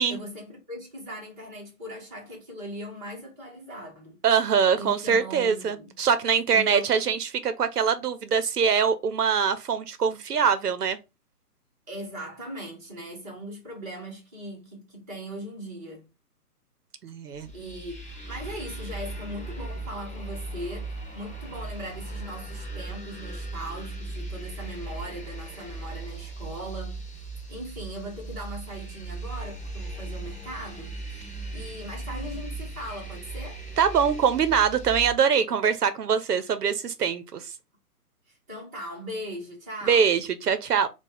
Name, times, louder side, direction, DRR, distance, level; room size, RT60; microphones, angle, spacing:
voice 1, 0.0-4.2 4.7-6.0 6.5-6.9 11.9-16.1 17.3-33.6 38.5-40.1, equal, 10° right, 1.0 m, -39 dB
voice 2, 4.2-11.0 17.0-17.5 33.8-37.4 39.9-40.9, right 6 dB, 75° right, 0.7 m, -23 dB
sound 1, 17.3-35.1, right 2 dB, 15° left, 1.2 m, -38 dB
3.9 x 2.3 x 4.3 m
hypercardioid pair, 170°, 47 cm